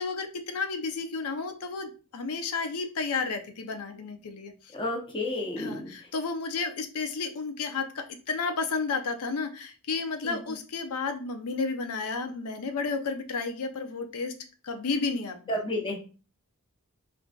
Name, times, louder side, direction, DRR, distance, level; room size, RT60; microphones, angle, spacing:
voice 1, 0.0-4.5 5.6-14.3 14.6-15.4, left 4 dB, 80° left, 7 dB, 0.5 m, -32 dB
voice 2, 4.7-5.9 10.2-10.4 15.5-16.0, left 1 dB, 20° left, 1 dB, 0.7 m, -31 dB
3.7 x 2.5 x 2.2 m, 0.36 s
head